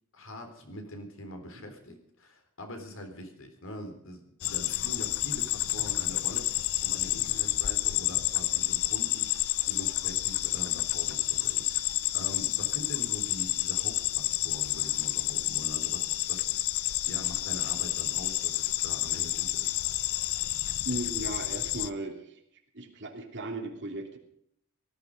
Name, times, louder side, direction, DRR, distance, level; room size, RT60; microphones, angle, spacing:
voice 1, 0.1-16.6 17.1-19.7, equal, 65° left, 5 dB, 3.8 m, -43 dB
sound 1, 4.4-21.9, left 16 dB, 85° left, 0.6 m, -30 dB
voice 2, 20.8-22.4 22.7-24.2, right 2 dB, 55° right, 3 dB, 3.0 m, -36 dB
18.5 x 14.0 x 5.2 m, 0.71 s
head